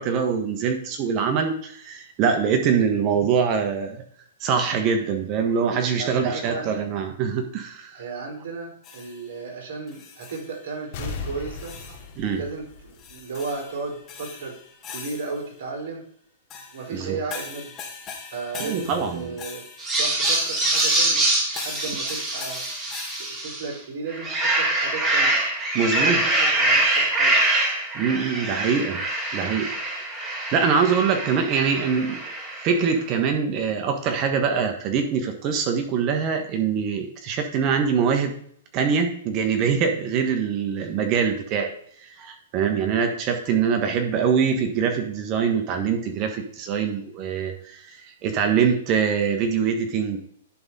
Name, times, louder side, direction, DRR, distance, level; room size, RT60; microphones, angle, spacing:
voice 1, 0.0-4.0 4.4-8.0 12.2-12.4 16.9-17.2 18.6-19.3 25.7-26.2 27.9-29.0 29.3-29.7 30.0-32.2 32.6-38.4 38.7-41.7 42.0-50.2, right 6 dB, 35° right, 5 dB, 1.4 m, -24 dB
voice 2, 6.0-6.8 7.9-11.7 12.3-14.6 14.9-16.0 16.7-17.7 18.3-19.6 20.0-21.3 21.5-22.6 23.4-25.4 25.7-27.4, right 4 dB, 60° right, -1 dB, 4.1 m, -34 dB
sound 1, 8.8-9.4 9.9-10.7 10.9-12.1 13.0-15.6 16.5-23.4, left 6 dB, 30° left, 2.0 m, -41 dB
sound 2, 10.9-13.5 13.9-14.0, left 4 dB, 55° left, 2.4 m, -36 dB
sound 3, 19.8-23.7 24.1-32.8, right 2 dB, 20° right, 2.6 m, -24 dB
11.0 x 4.0 x 5.5 m, 0.63 s
hypercardioid pair, 130°, 0 cm